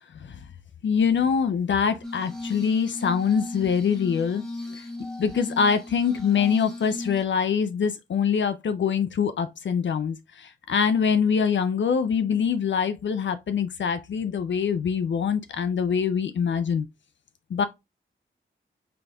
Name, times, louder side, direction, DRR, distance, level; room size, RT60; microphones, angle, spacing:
voice 1, 0.8-4.4 4.7-4.8 5.2-16.9 17.5-17.6, left 6 dB, 65° left, 0.4 m, -24 dB
Glass, 2.0-7.2, left 2 dB, ahead, 1.1 m, -37 dB
3.9 x 3.4 x 2.3 m
cardioid pair, 60°, 20 cm